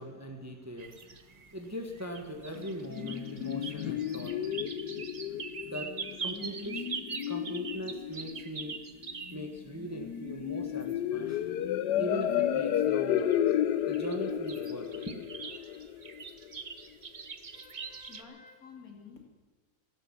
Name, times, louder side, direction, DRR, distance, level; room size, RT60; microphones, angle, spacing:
voice 1, 0.0-4.7 5.6-6.9 7.3-8.8 9.3-11.4 11.9-13.3 13.9-15.2, equal, 10° right, 3 dB, 1.4 m, -40 dB
sound 1, 0.8-9.6 10.0-11.0 11.6-11.7 12.1-13.5 13.8-18.2, right 5 dB, 40° right, 0.6 m, -43 dB
sound 2, 2.5-16.5, left 10 dB, 90° left, 1.3 m, -32 dB
voice 2, 17.5-19.2, left 5 dB, 60° left, 2 dB, 2.9 m, -51 dB
15.5 x 12.0 x 7.6 m, 1.4 s
omnidirectional pair, 1.7 m